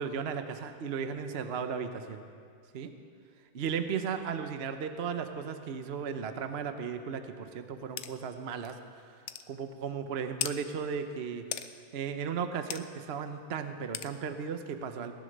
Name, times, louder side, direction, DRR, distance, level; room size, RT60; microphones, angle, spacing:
voice 1, 0.0-2.2 2.7-2.9 3.5-8.8 9.5-11.7 11.9-15.1, right 6 dB, 50° right, 8 dB, 0.8 m, -35 dB
sound 1, 8.0-8.1 8.7-8.8 9.3-9.5 10.4-10.6 11.5-11.7 12.7-12.8 13.9-14.1, left 11 dB, 85° left, 1.4 m, -35 dB
18.5 x 11.0 x 6.6 m, 2.2 s
omnidirectional pair, 2.0 m